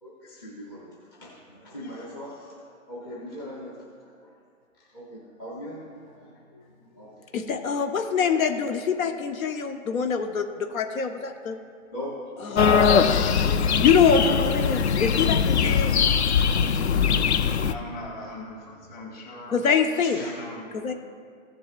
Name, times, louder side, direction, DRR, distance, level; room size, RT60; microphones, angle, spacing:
voice 1, 0.0-3.8 4.0-4.4 4.8-7.3 11.9-12.2 13.4-13.5 20.0-20.3, left 1 dB, 20° left, -6 dB, 0.7 m, -41 dB
voice 2, 7.3-11.6 12.4-15.9 19.5-20.2 20.7-20.9, left 6 dB, 90° left, 6 dB, 0.8 m, -25 dB
sound 1, 12.6-17.7, left 6 dB, 55° left, 0.5 m, -21 dB
voice 3, 17.6-19.6 20.2-20.9, left 1 dB, 35° left, -2 dB, 2.4 m, -40 dB
15.0 x 7.5 x 2.4 m, 2.1 s
hypercardioid pair, 170°, 40 cm